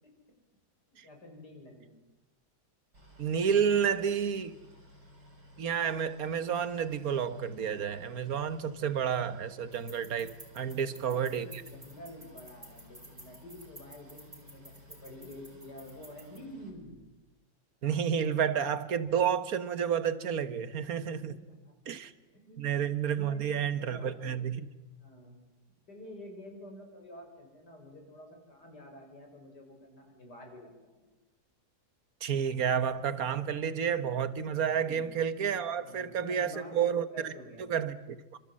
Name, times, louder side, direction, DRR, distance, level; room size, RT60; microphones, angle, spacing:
voice 1, 0.9-1.9 10.6-17.0 21.1-21.7 22.3-23.5 23.8-24.4 24.9-25.4 25.9-31.1 34.8-35.2 35.8-36.8 37.1-37.7, left 1 dB, 80° left, 3 dB, 6.4 m, -49 dB
Boat Water vehicle, 2.9-16.7, left 1 dB, 85° right, 6.0 m, -56 dB
voice 2, 3.2-4.5 5.6-11.6 17.8-21.4 21.9-22.1 22.6-24.7 32.2-37.3 37.7-38.4, right 8 dB, 60° right, 13 dB, 1.7 m, -30 dB
sound 1, 9.7-16.4, right 1 dB, 25° right, 3.9 m, -53 dB
27.0 x 26.0 x 7.6 m, 1.0 s
omnidirectional pair, 1.8 m